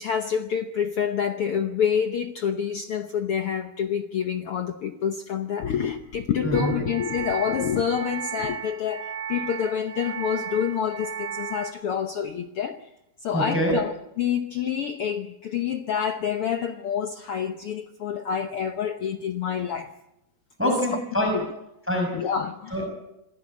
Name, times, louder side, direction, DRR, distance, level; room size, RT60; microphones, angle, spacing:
voice 1, 0.0-12.9 13.2-19.9 20.6-20.8 21.3-21.5 22.1-22.8, left 8 dB, 70° left, 7 dB, 1.3 m, -27 dB
voice 2, 6.4-6.7 13.3-13.7 20.6-21.3 21.9-22.1 22.7-22.9, equal, 5° right, 2 dB, 5.2 m, -24 dB
sound 1, 6.5-11.7, right 8 dB, 85° right, 3.7 m, -35 dB
27.0 x 16.0 x 8.5 m, 0.89 s
omnidirectional pair, 3.9 m